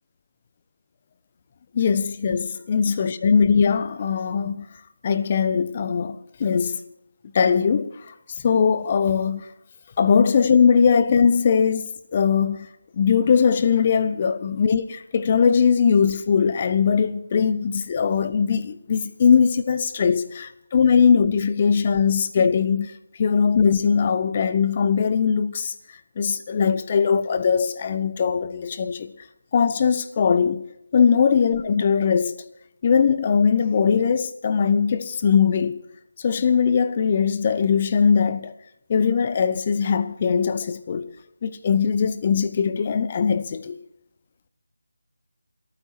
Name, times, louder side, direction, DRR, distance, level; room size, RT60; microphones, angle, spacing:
voice 1, 1.7-4.7 5.0-6.8 7.3-7.9 8.4-9.5 10.0-12.7 12.9-20.2 20.7-25.7 26.2-29.1 29.5-30.6 30.9-32.4 32.8-35.8 36.2-38.5 38.9-41.1 41.4-43.8, left 6 dB, 30° left, 1.0 m, -20 dB
28.0 x 9.5 x 4.5 m
figure-of-eight pair, 160°, 0 cm